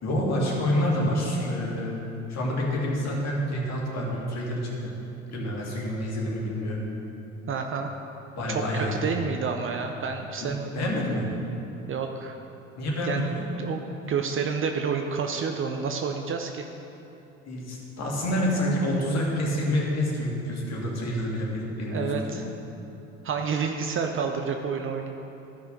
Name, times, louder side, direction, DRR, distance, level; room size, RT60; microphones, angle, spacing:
voice 1, 0.0-2.0 2.3-4.9 5.3-6.8 8.4-9.1 10.4-11.3 12.8-13.4 17.5-22.2, left 1 dB, 40° left, -3 dB, 2.2 m, -28 dB
voice 2, 7.5-7.9 8.5-10.7 11.9-12.4 13.1-13.2 13.6-16.6 21.9-22.4 23.2-25.2, right 6 dB, 30° right, 4 dB, 0.6 m, -29 dB
13.0 x 5.7 x 3.9 m, 2.9 s
figure-of-eight pair, 65°, 40 cm